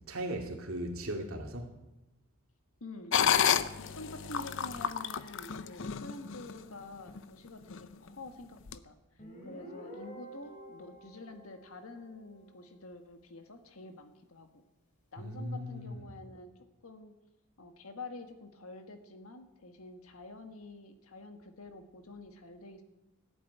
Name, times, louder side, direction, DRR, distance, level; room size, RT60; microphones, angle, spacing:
voice 1, 0.1-1.7 15.2-16.0, right 1 dB, 75° right, 2.5 m, -37 dB
voice 2, 2.8-8.9 9.4-14.6 15.1-16.5 16.8-17.2 17.6-22.8, left 2 dB, 80° left, 1.6 m, -48 dB
sound 1, 3.1-6.6 7.1-7.2 7.7-8.1 8.7-8.8, left 8 dB, 60° left, 0.6 m, -30 dB
Guitar, 9.2-12.7, right 1 dB, 35° left, 2.9 m, -50 dB
14.0 x 8.5 x 9.4 m
head